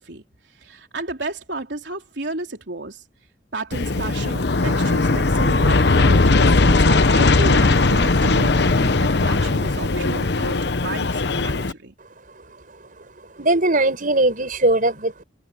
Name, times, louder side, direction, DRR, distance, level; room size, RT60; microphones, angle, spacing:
voice 1, 0.0-3.0 3.5-11.9, right 2 dB, 90° right, 3.3 m, -33 dB
Aircraft, 3.7-11.7, left 3 dB, 70° left, 1.0 m, -18 dB
voice 2, 13.4-15.2, right 2 dB, 50° right, 6.2 m, -19 dB
head